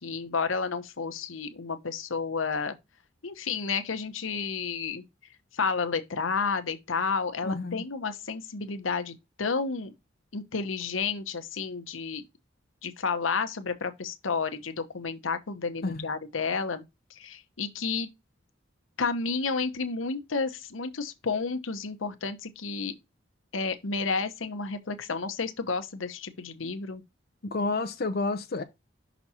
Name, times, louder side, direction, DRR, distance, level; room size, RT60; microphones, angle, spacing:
voice 1, 0.0-2.8 3.2-5.0 5.5-9.9 10.3-12.2 12.8-16.8 17.1-18.1 19.0-23.0 23.5-27.0, left 4 dB, 85° left, 0.9 m, -31 dB
voice 2, 7.4-7.8 15.8-16.1 27.5-28.6, left 3 dB, 55° left, 0.7 m, -30 dB
6.0 x 4.1 x 4.2 m
head